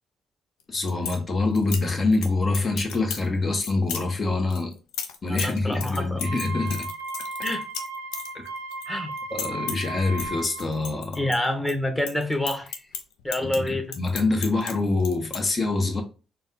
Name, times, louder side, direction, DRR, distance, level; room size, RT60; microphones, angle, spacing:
sound 1, 0.6-1.2 1.6-2.3 2.5-3.3 3.6-4.0 4.5-8.8 9.1-9.9 10.2-11.7 12.0-14.7 15.0-15.4, left 7 dB, 80° left, 0.5 m, -34 dB
voice 1, 0.7-4.7 5.2-6.9 9.3-11.3 13.4-16.0, left 3 dB, 40° left, 1.2 m, -25 dB
voice 2, 5.3-6.2 7.4-7.6 8.9-9.1 11.1-12.8 13.2-13.9, left 1 dB, 10° left, 1.3 m, -27 dB
Wind instrument woodwind instrument, 6.1-10.7, right 3 dB, 85° right, 0.5 m, -35 dB
4.0 x 2.4 x 3.7 m
hypercardioid pair, 50°, 0 cm